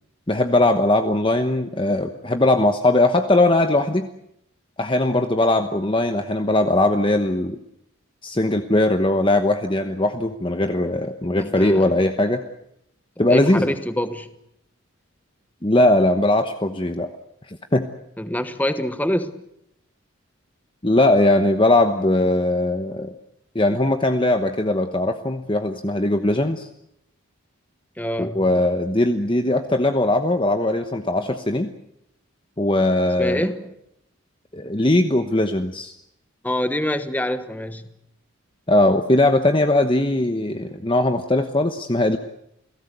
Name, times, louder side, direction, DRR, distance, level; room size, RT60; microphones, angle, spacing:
voice 1, 0.3-4.1 4.8-7.6 8.2-12.4 13.2-13.7 15.6-17.1 17.5-17.9 20.8-23.2 23.5-26.7 28.2-31.7 32.6-33.5 34.5-35.9 38.7-42.2, left 1 dB, 25° left, 7 dB, 1.0 m, -20 dB
voice 2, 11.4-11.9 13.3-14.3 18.2-19.4 28.0-28.4 33.2-33.7 36.4-37.9, left 1 dB, 10° left, 10 dB, 1.2 m, -25 dB
29.5 x 17.5 x 8.1 m, 0.79 s
head